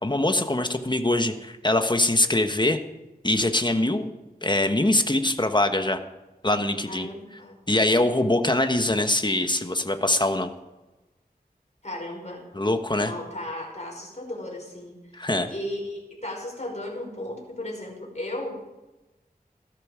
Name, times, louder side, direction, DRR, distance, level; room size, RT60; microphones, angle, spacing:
voice 1, 0.0-2.8 3.2-4.1 4.4-6.0 6.4-7.1 7.7-10.5 12.5-13.1 15.1-15.5, left 1 dB, 30° left, 7 dB, 1.3 m, -23 dB
voice 2, 6.8-7.6 11.8-12.5 13.0-18.6, left 1 dB, 45° left, -1 dB, 5.3 m, -35 dB
16.0 x 13.0 x 5.1 m, 1.0 s
wide cardioid pair, 50°, 16 cm